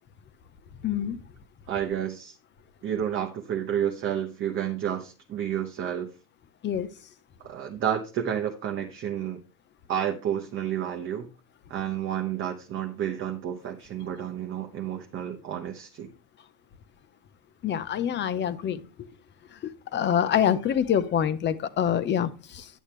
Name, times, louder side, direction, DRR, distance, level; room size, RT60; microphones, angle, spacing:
voice 1, 0.8-1.2 6.6-6.9 17.6-18.8 19.6-22.7, left 9 dB, 25° left, 14 dB, 0.7 m, -26 dB
voice 2, 1.7-2.3 2.8-6.1 7.4-9.4 9.9-11.3 11.7-16.1, right 9 dB, 25° right, 3 dB, 1.0 m, -30 dB
10.0 x 8.6 x 3.2 m, 0.32 s
supercardioid pair, 145°, 47 cm